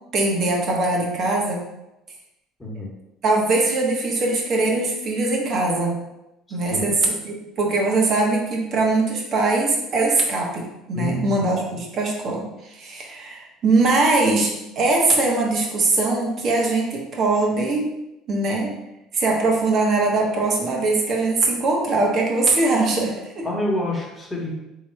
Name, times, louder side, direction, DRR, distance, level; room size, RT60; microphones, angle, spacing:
voice 1, 0.1-1.6 2.8-2.9 3.2-6.0 6.5-17.9 18.3-18.7 19.1-23.5, right 3 dB, 50° right, -1 dB, 1.1 m, -21 dB
voice 2, 10.9-11.5 23.4-24.5, left 1 dB, 10° left, -3 dB, 1.3 m, -27 dB
3.6 x 3.0 x 4.5 m, 0.92 s
supercardioid pair, 105°, 0 cm